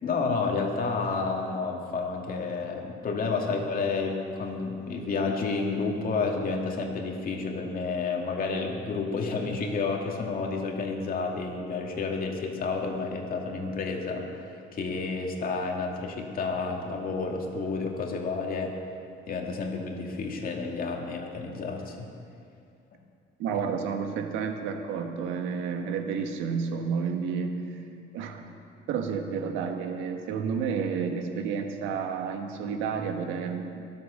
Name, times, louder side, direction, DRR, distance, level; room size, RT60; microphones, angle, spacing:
voice 1, 0.0-18.7 19.3-22.1 23.5-23.6, left 4 dB, 45° left, 1 dB, 2.4 m, -30 dB
voice 2, 23.4-27.8 28.1-28.4 28.9-33.9, right 6 dB, 85° right, 5 dB, 1.4 m, -31 dB
22.0 x 8.1 x 6.4 m, 2.4 s
cardioid pair, 105°, 20 cm